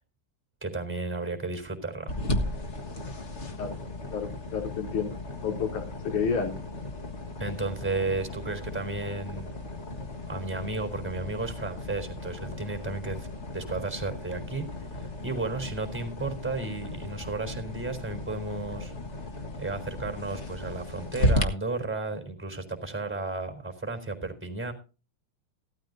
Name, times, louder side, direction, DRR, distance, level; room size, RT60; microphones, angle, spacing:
voice 1, 0.6-2.2 7.4-9.6 10.3-13.3 13.5-18.9 19.6-24.7, right 3 dB, 5° right, 6 dB, 3.7 m, -33 dB
sound 1, 2.1-21.4, left 1 dB, 80° left, 0.6 m, -35 dB
voice 2, 4.1-6.5, left 6 dB, 60° left, 3 dB, 4.6 m, -30 dB
17.5 x 13.0 x 2.7 m, 0.33 s
omnidirectional pair, 4.1 m